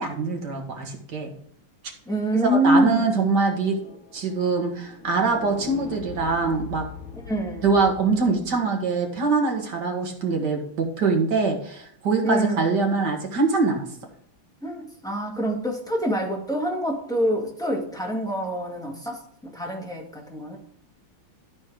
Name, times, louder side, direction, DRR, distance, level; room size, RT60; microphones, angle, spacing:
voice 1, 0.0-1.3 2.5-3.8 4.1-6.9 7.6-13.9, right 4 dB, 50° right, 2 dB, 2.3 m, -23 dB
voice 2, 2.0-3.1 7.3-7.7 12.2-12.8 14.6-20.6, equal, ahead, -1 dB, 1.6 m, -25 dB
sound 1, 3.1-8.6, left 4 dB, 40° left, 2.3 m, -42 dB
12.5 x 4.3 x 4.9 m, 0.67 s
omnidirectional pair, 2.4 m